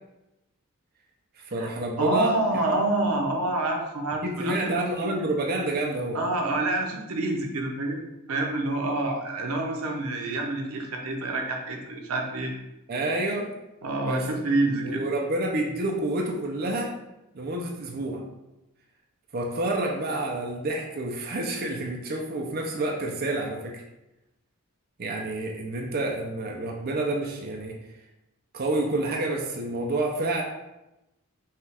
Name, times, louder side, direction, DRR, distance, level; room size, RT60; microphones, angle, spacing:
voice 1, 1.4-2.3 4.2-6.2 12.9-13.5 14.0-14.2 14.8-16.9 17.3-18.2 19.3-23.8 25.0-27.8 28.5-30.4, right 2 dB, 45° right, 0 dB, 0.5 m, -28 dB
voice 2, 2.0-5.1 6.1-8.0 8.3-12.5 13.8-15.0, right 2 dB, 90° right, 2 dB, 0.7 m, -27 dB
5.6 x 2.4 x 3.3 m, 0.94 s
head